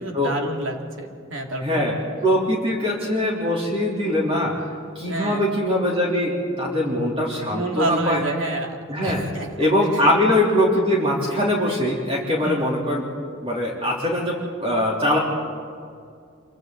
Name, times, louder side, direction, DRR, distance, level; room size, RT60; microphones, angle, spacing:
voice 1, 0.0-1.9 5.1-5.5 7.5-9.7 9.9-10.1 12.3-12.7, right 2 dB, 75° right, 2 dB, 2.6 m, -29 dB
voice 2, 1.6-1.9 2.2-4.5 4.9-8.2 8.9-9.2 9.6-13.0 13.4-15.2, left 1 dB, 30° right, -4 dB, 3.3 m, -22 dB
27.5 x 25.0 x 4.0 m, 2.3 s
head